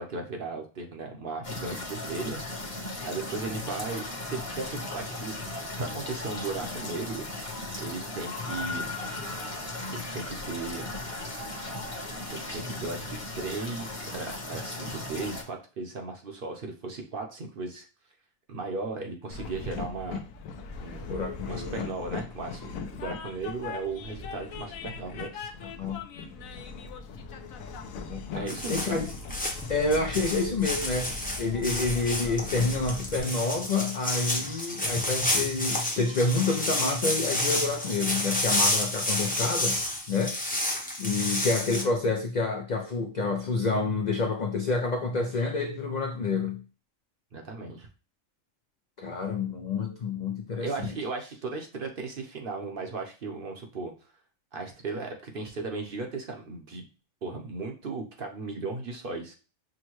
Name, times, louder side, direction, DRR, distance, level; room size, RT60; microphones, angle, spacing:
voice 1, 0.0-2.4 3.0-7.2 7.8-8.9 9.9-10.9 12.3-17.8 18.5-20.2 20.8-21.2 21.5-25.5 28.3-29.1 47.3-47.9 50.6-53.9 54.5-56.9 57.2-59.3, right 3 dB, 50° right, 3 dB, 0.8 m, -36 dB
sound 1, 1.4-15.4, left 2 dB, 30° left, 1.0 m, -36 dB
Train, 19.3-33.2, left 4 dB, 90° left, 1.0 m, -39 dB
voice 2, 21.1-21.9 25.6-26.0 28.1-29.1 29.7-39.8 40.1-40.4 41.0-46.6 49.0-50.9, left 3 dB, 65° left, 3 dB, 0.4 m, -28 dB
sound 2, 28.5-41.8, left 1 dB, 10° left, 0.6 m, -30 dB
6.1 x 2.2 x 3.0 m, 0.34 s
omnidirectional pair, 1.4 m